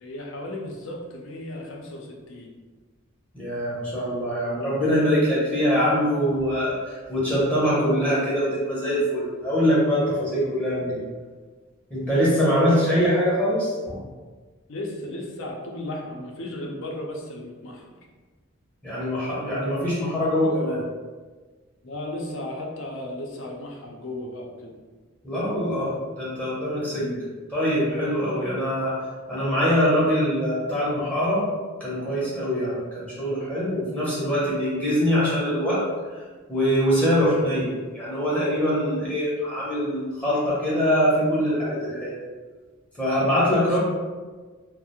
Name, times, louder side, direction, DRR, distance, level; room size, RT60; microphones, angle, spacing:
voice 1, 0.0-2.5 10.7-10.9 14.7-17.9 21.8-24.7 26.9-27.3 43.6-43.8, left 1 dB, 65° left, 0 dB, 0.5 m, -35 dB
voice 2, 3.3-11.0 11.9-14.0 18.8-20.8 25.2-27.0 27.5-28.9 29.3-31.4 31.8-35.8 36.1-36.2 36.5-42.2 43.0-43.8, equal, 5° left, -9 dB, 0.6 m, -23 dB
2.3 x 2.0 x 2.8 m, 1.4 s
head